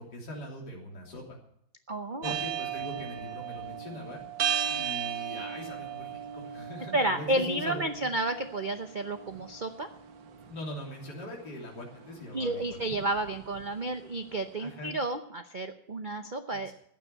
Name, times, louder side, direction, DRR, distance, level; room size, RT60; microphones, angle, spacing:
voice 1, 0.0-1.4 2.2-4.2 4.7-8.1 10.5-13.0 14.6-15.0 16.5-16.7, left 1 dB, 55° left, -2 dB, 3.8 m, -41 dB
voice 2, 1.9-2.4 6.9-9.9 12.3-16.7, right 2 dB, 90° right, 7 dB, 0.4 m, -31 dB
sound 1, 2.2-14.4, right 9 dB, 70° right, 1.9 m, -37 dB
15.0 x 10.0 x 6.8 m, 0.72 s
omnidirectional pair, 2.1 m